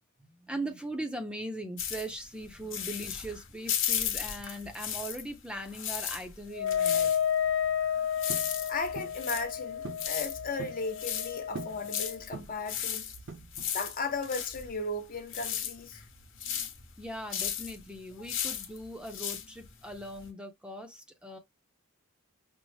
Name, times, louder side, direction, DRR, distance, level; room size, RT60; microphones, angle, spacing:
voice 1, 0.2-7.2 17.0-21.4, right 1 dB, 5° right, 0.6 m, -40 dB
sound 1, 1.8-5.4 5.7-20.3, left 9 dB, 60° left, 1.0 m, -36 dB
Wind instrument woodwind instrument, 6.5-12.2, left 8 dB, 80° left, 0.4 m, -31 dB
sound 2, 8.3-8.5 9.0-9.2 9.8-10.1 10.4-10.8 11.5-11.8 12.3-12.7 13.3-13.8, right 4 dB, 55° right, 0.6 m, -42 dB
voice 2, 8.7-13.1 13.7-16.0 18.2-18.3, left 3 dB, 40° left, 0.7 m, -36 dB
5.3 x 2.0 x 3.1 m
head